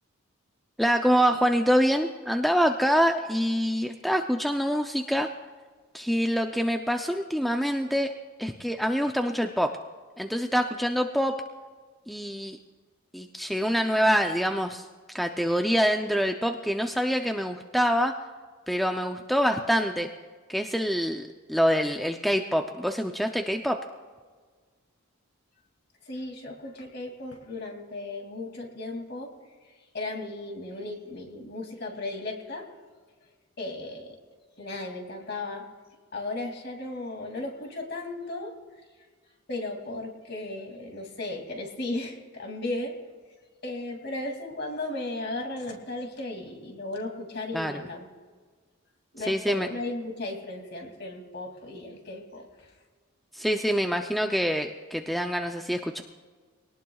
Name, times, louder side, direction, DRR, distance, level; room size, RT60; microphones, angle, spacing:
voice 1, 0.8-5.3 5.9-8.1 8.4-9.7 10.2-11.3 12.1-12.6 13.1-14.9 15.1-18.1 18.7-20.1 20.5-23.8 47.5-47.8 49.3-49.7 53.3-56.0, equal, ahead, 4 dB, 0.5 m, -25 dB
voice 2, 26.0-29.3 29.6-32.7 33.6-34.2 34.6-35.7 36.1-38.5 39.5-42.9 43.6-48.1 49.1-52.7, left 2 dB, 50° left, 2 dB, 2.6 m, -35 dB
23.5 x 18.5 x 2.4 m, 1.5 s
head